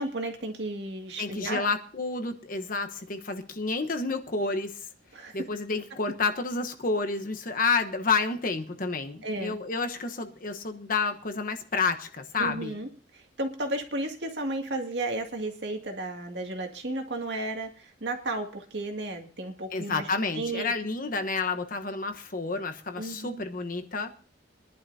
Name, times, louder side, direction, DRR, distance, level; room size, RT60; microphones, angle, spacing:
voice 1, 0.0-1.7 5.1-5.3 9.2-9.6 12.4-20.1 20.4-20.7 23.0-23.4, right 2 dB, 70° right, 3 dB, 2.2 m, -33 dB
voice 2, 1.2-4.9 5.3-12.8 19.7-24.1, left 4 dB, 50° left, 6 dB, 1.1 m, -30 dB
24.0 x 11.0 x 2.7 m, 0.39 s
head